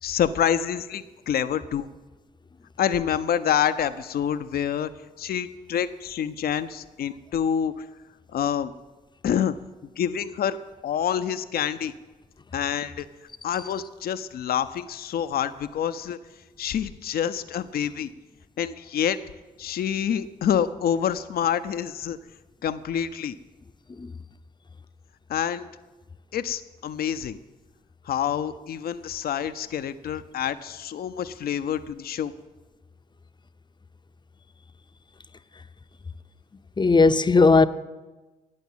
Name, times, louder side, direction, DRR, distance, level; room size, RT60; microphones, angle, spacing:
voice 1, 0.0-1.9 2.8-4.9 5.2-7.8 8.3-8.7 9.2-9.6 10.0-10.6 10.8-11.9 12.5-13.1 13.4-16.2 16.6-18.1 18.6-19.2 19.6-22.2 22.6-23.4 25.3-25.7 26.3-27.4 28.1-32.3, left 9 dB, 60° left, 0.6 m, -27 dB
voice 2, 36.8-37.7, left 4 dB, 25° left, 0.7 m, -17 dB
12.0 x 9.1 x 7.4 m
hypercardioid pair, 45°, 18 cm